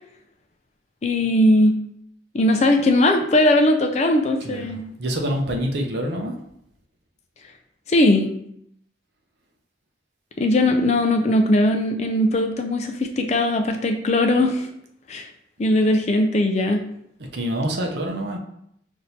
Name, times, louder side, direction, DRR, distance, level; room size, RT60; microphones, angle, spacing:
voice 1, 1.0-1.8 2.3-4.8 7.9-8.3 10.4-14.7 15.1-15.3 15.6-16.8, left 1 dB, 35° left, 4 dB, 0.4 m, -19 dB
voice 2, 4.4-6.4 17.3-18.4, equal, 60° right, 2 dB, 0.6 m, -26 dB
6.0 x 2.6 x 2.7 m, 0.73 s
head